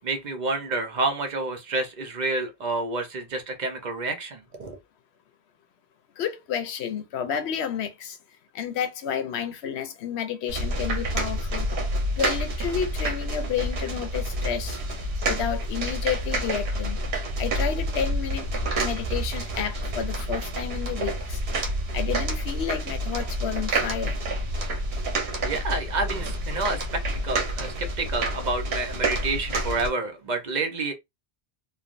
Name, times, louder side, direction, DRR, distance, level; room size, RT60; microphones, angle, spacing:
voice 1, 0.0-4.8 25.1-30.9, right 3 dB, 50° right, 0.7 m, -29 dB
voice 2, 6.2-8.2 8.5-11.7 12.2-14.8 15.3-17.0 17.4-21.4 21.9-24.2, left 8 dB, 80° left, 0.9 m, -31 dB
sound 1, 10.5-29.9, right 1 dB, 70° right, 1.1 m, -28 dB
3.2 x 2.2 x 2.4 m
omnidirectional pair, 1.1 m